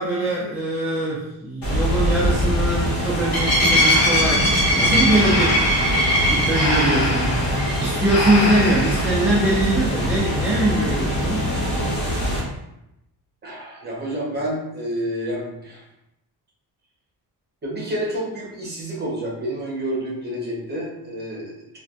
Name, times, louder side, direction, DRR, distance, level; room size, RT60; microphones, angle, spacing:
voice 1, 0.0-5.8 6.2-11.5, right 1 dB, 5° right, -7 dB, 0.3 m, -23 dB
sound 1, 1.6-12.4, equal, 55° left, 1.3 m, -21 dB
Breathing, 3.7-9.3, left 2 dB, 40° left, 0.9 m, -27 dB
voice 2, 13.4-15.8 17.6-21.8, equal, 25° right, -4 dB, 0.9 m, -29 dB
3.3 x 2.5 x 2.5 m, 0.88 s
cardioid pair, 160°, 40 cm